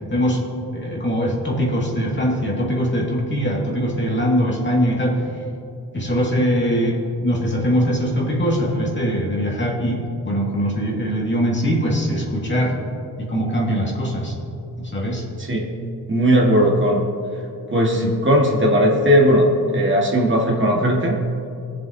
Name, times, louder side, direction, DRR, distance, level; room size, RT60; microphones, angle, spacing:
voice 1, 0.1-0.4 0.7-5.2 5.9-12.8 13.2-14.3 14.8-15.2 17.9-18.1, equal, 30° left, -2 dB, 2.4 m, -22 dB
voice 2, 16.1-17.0 17.7-21.2, equal, 30° right, -2 dB, 2.1 m, -17 dB
17.5 x 7.4 x 2.9 m, 2.5 s
cardioid pair, 70°, 39 cm